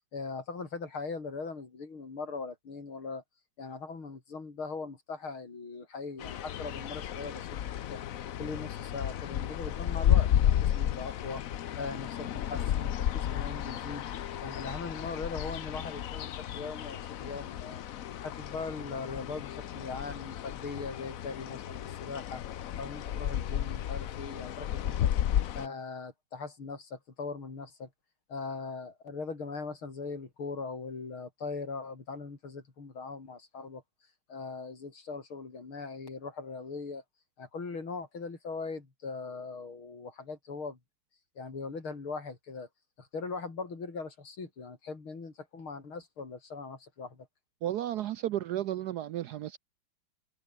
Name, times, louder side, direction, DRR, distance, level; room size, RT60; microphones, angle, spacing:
voice 1, 0.1-3.2 3.6-7.6 7.9-8.0 8.4-11.4 11.8-14.1 14.4-17.8 18.2-22.4 22.8-27.9 28.3-33.8 34.3-37.0 37.4-40.8 41.4-42.7 43.0-47.3, left 4 dB, 80° left, 5.2 m, -40 dB
sound 1, 6.2-25.7, left 11 dB, 60° left, 0.9 m, -32 dB
voice 2, 47.6-49.6, right 12 dB, 75° right, 0.9 m, -33 dB
omnidirectional pair, 2.3 m